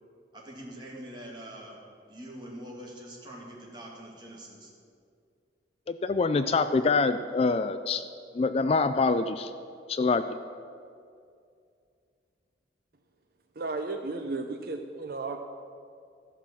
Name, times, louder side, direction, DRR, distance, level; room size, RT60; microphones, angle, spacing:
voice 1, 0.3-1.8 2.1-4.7, right 1 dB, 25° right, -3 dB, 2.2 m, -44 dB
voice 2, 5.9-8.0 8.3-9.5 9.9-10.3, left 4 dB, 35° left, 11 dB, 0.3 m, -25 dB
voice 3, 13.6-15.4, right 3 dB, 55° right, 5 dB, 0.6 m, -34 dB
14.0 x 5.7 x 7.3 m, 2.3 s
head